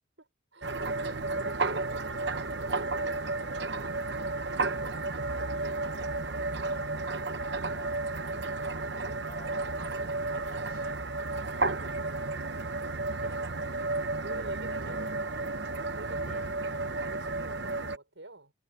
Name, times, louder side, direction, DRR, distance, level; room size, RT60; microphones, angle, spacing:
voice 1, 0.2-6.8 11.3-12.5 13.0-13.2 14.2-16.3 16.9-18.5, right 2 dB, 80° right, 6.2 m, -49 dB
sound 1, 0.6-18.0, right 3 dB, 60° right, 1.0 m, -32 dB
voice 2, 7.7-8.2 9.2-11.3 12.6-12.7 13.2-13.7 14.6-15.5 16.2-16.6, left 2 dB, 45° left, 3.5 m, -54 dB
head